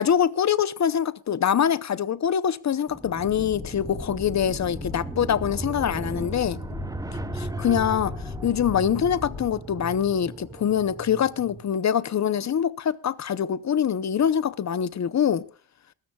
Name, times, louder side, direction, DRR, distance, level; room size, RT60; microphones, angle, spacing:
voice 1, 0.0-6.6 7.4-8.1 8.4-15.4, left 8 dB, 45° left, 0.8 m, -24 dB
sound 1, 2.9-11.7, right 2 dB, 10° right, 0.6 m, -37 dB
sound 2, 3.2-9.5, left 6 dB, 60° left, 2.7 m, -38 dB
21.5 x 13.5 x 2.3 m
cardioid pair, 125°, 41 cm